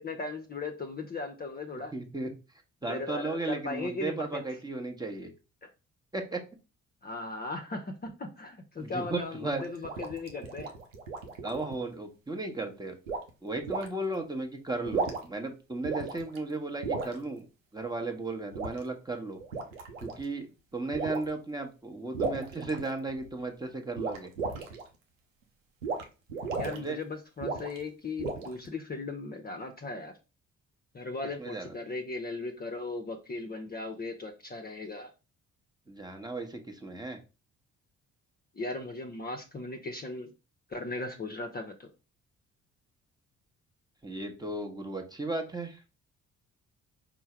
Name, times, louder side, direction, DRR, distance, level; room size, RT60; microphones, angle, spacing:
voice 1, 0.0-1.9 2.8-4.4 5.6-5.7 7.0-10.7 26.5-30.1 30.9-35.1 38.5-40.3 40.7-41.9, left 3 dB, 25° left, 4 dB, 0.7 m, -37 dB
voice 2, 1.9-2.3 2.8-5.3 6.1-6.4 8.8-9.6 11.4-13.0 13.4-17.4 17.7-19.4 20.0-20.5 20.7-24.3 26.7-27.0 31.4-31.8 35.9-37.2 44.0-45.8, right 2 dB, 10° right, 3 dB, 1.0 m, -35 dB
sound 1, 9.5-11.8 13.1-13.3 13.7-13.9 14.8-15.4 15.8-16.4 16.8-17.1 18.5-18.8 19.4-20.2 20.9-21.3 22.1-23.3 24.0-24.8 25.8-26.0 26.3-26.8 27.4-27.8 28.2-28.7, right 4 dB, 90° right, 0.6 m, -34 dB
4.5 x 2.1 x 4.4 m, 0.31 s
figure-of-eight pair, 45°, 38 cm